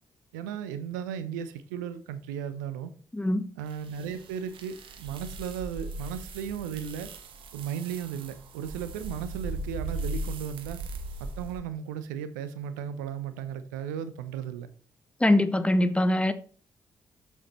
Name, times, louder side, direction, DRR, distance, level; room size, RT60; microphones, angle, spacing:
voice 1, 0.3-2.9 3.6-7.1 7.5-10.8 11.2-14.7, right 8 dB, 80° right, 0.5 m, -35 dB
sound 1, 3.7-11.6, right 2 dB, 60° right, 1.0 m, -38 dB
voice 2, 15.2-16.3, left 1 dB, 10° left, 0.9 m, -23 dB
7.2 x 7.2 x 3.0 m
hypercardioid pair, 40°, 10 cm